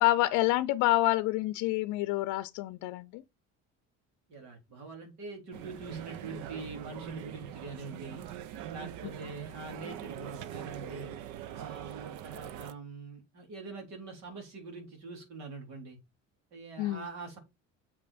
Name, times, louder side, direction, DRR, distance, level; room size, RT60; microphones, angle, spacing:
voice 1, 0.0-3.2 9.0-9.1 16.8-17.0, left 17 dB, 80° left, 0.6 m, -27 dB
voice 2, 4.3-8.2 8.7-11.1 11.5-16.0 16.5-17.4, right 3 dB, 65° right, 3.8 m, -44 dB
sound 1, 5.5-12.7, right 10 dB, 85° right, 0.8 m, -43 dB
7.1 x 5.3 x 4.2 m
cardioid pair, 160°, 29 cm